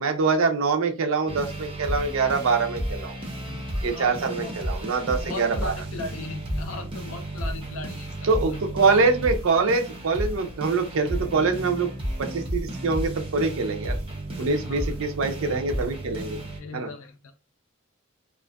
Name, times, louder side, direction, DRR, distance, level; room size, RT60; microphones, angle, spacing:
voice 1, 0.0-3.2 3.8-5.7 8.2-11.9 12.2-14.0 14.4-16.4 16.7-16.9, right 4 dB, 65° right, 5 dB, 0.5 m, -24 dB
sound 1, 1.3-16.6, right 1 dB, 25° right, 0.6 m, -33 dB
voice 2, 3.3-4.5 5.2-8.6 14.6-15.0 16.5-17.3, left 3 dB, 65° left, 6 dB, 0.4 m, -38 dB
2.5 x 2.4 x 2.2 m, 0.32 s
head